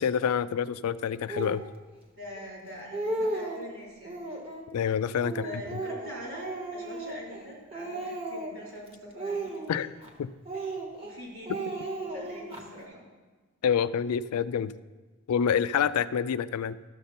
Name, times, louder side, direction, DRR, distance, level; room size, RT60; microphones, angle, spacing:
voice 1, 0.0-1.6 4.7-5.5 9.7-9.9 10.2-10.3 13.6-14.7 15.3-16.7, left 7 dB, 85° left, 15 dB, 0.4 m, -27 dB
Speech, 1.3-1.6 2.3-2.4 2.8-3.7 4.0-4.7 5.2-7.5 7.7-8.7 9.2-10.1 10.5-11.1 11.5-12.6, right 2 dB, 25° right, 1.0 m, -35 dB
voice 2, 2.2-4.2 5.3-9.5 11.0-11.9 12.1-13.0, equal, 70° right, -5 dB, 3.7 m, -43 dB
12.5 x 6.6 x 4.3 m, 1.3 s
head